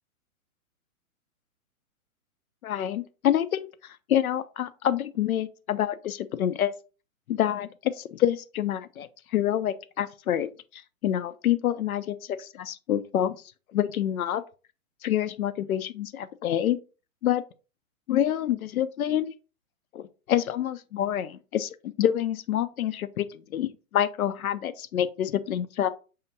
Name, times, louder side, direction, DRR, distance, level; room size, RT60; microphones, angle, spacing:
voice 1, 2.6-6.7 7.3-13.4 13.7-14.4 15.0-16.8 17.2-17.4 18.1-19.3 19.9-25.9, left 11 dB, 80° left, 0.6 m, -27 dB
5.7 x 2.8 x 2.6 m
hypercardioid pair, 140°, 43 cm